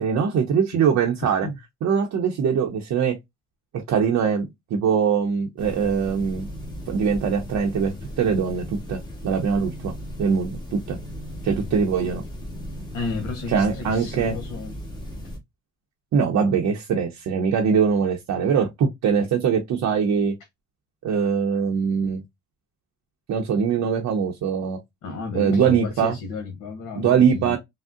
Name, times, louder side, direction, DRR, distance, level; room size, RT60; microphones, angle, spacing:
voice 1, 0.0-1.5 1.8-3.2 3.7-6.5 6.9-11.0 11.4-12.2 13.5-14.4 16.1-20.3 21.0-22.2 23.3-24.8 25.3-26.1 27.0-27.6, right 6 dB, 65° right, 0.6 m, -22 dB
sound 1, 5.6-15.4, equal, 15° left, 1.1 m, -36 dB
voice 2, 12.9-14.8 25.0-27.6, left 4 dB, 75° left, 0.9 m, -32 dB
3.6 x 2.0 x 2.4 m
cardioid pair, 90°, 30 cm